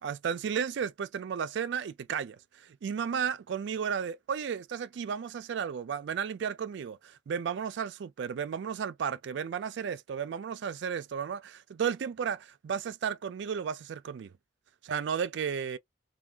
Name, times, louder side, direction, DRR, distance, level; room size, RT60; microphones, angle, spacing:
voice 1, 0.0-14.3 14.8-15.8, right 7 dB, 65° right, 0.3 m, -33 dB
2.4 x 2.2 x 3.3 m
head